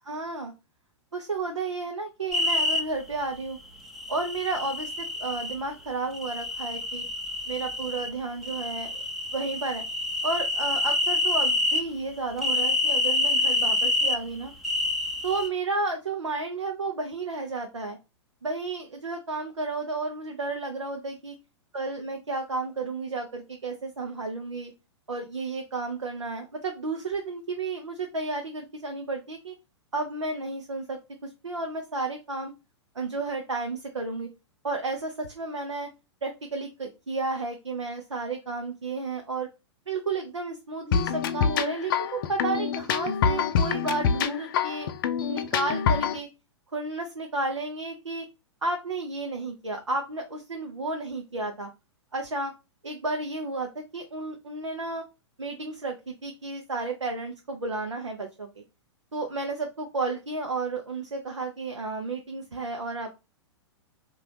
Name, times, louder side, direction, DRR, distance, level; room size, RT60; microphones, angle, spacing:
voice 1, 0.1-0.5 1.1-3.6 4.1-7.0 7.5-9.0 9.3-9.8 10.2-14.5 15.2-18.0 18.4-21.3 21.7-24.7 25.1-29.5 29.9-32.5 32.9-34.3 34.6-35.9 36.2-39.5 39.9-44.9 45.3-46.3 46.7-48.3 48.6-51.7 52.1-52.5 52.8-55.0 55.4-58.5 59.1-63.1, right 3 dB, 80° right, 2 dB, 0.7 m, -32 dB
sound 1, 2.3-2.8 4.0-5.5 6.1-8.1 8.4-11.9 12.4-14.2 14.6-15.5, left 2 dB, ahead, 0.6 m, -27 dB
sound 2, 40.9-46.2, left 7 dB, 50° left, 0.4 m, -26 dB
3.8 x 2.5 x 3.2 m, 0.26 s
figure-of-eight pair, 105°, 15 cm